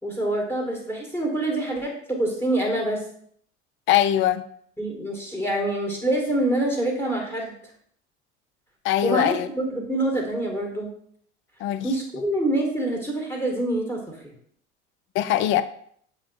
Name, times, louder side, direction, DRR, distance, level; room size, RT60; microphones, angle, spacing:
voice 1, 0.0-3.0 4.8-7.5 9.0-10.9 11.8-14.3, right 1 dB, 5° left, 1.8 m, -26 dB
voice 2, 3.9-4.5 8.8-9.5 11.6-11.9 15.1-15.6, left 12 dB, 35° left, 0.4 m, -21 dB
7.3 x 3.0 x 4.3 m
figure-of-eight pair, 70°, 37 cm